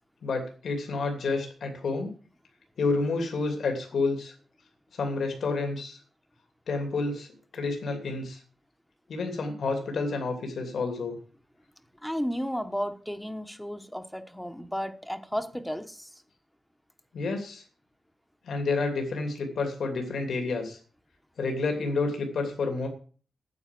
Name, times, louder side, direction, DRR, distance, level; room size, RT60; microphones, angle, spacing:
voice 1, 0.2-2.1 2.8-4.3 4.9-6.0 6.7-7.3 7.5-8.4 9.1-11.1 17.1-17.6 18.4-20.8 21.4-22.9, left 3 dB, 75° left, 2.8 m, -29 dB
voice 2, 12.0-16.1, equal, 5° left, 1.1 m, -33 dB
9.6 x 7.9 x 7.7 m
wide cardioid pair, 115°, 0 cm